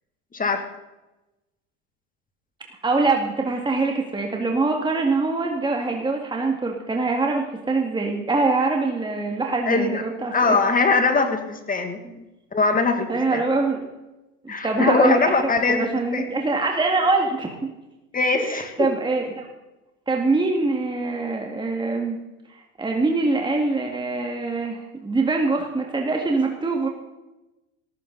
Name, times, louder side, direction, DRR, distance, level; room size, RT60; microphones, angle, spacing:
voice 1, 2.8-10.6 12.0-12.1 13.1-13.8 14.4-15.2 15.7-17.7 18.3-19.5 20.1-22.2 22.8-26.9, right 3 dB, 10° right, 1 dB, 2.1 m, -24 dB
voice 2, 9.7-10.0 10.3-12.2 12.5-13.4 14.5-16.3 18.1-18.7, left 4 dB, 20° left, 6 dB, 2.3 m, -21 dB
17.5 x 15.0 x 4.1 m, 1.0 s
hypercardioid pair, 95°, 39 cm